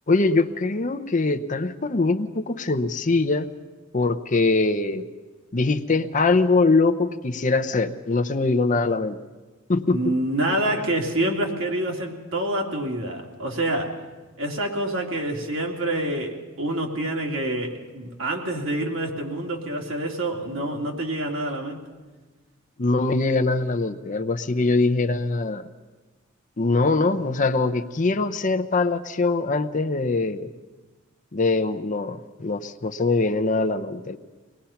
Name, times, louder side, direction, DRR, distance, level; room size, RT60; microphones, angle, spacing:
voice 1, 0.1-3.5 3.9-5.1 5.5-9.2 9.7-10.1 22.8-25.7 26.6-30.5 31.3-34.2, left 3 dB, 40° left, 10 dB, 0.7 m, -22 dB
voice 2, 9.9-14.0 14.4-21.8, right 1 dB, 70° right, 1 dB, 2.8 m, -27 dB
24.0 x 19.5 x 5.8 m, 1.3 s
head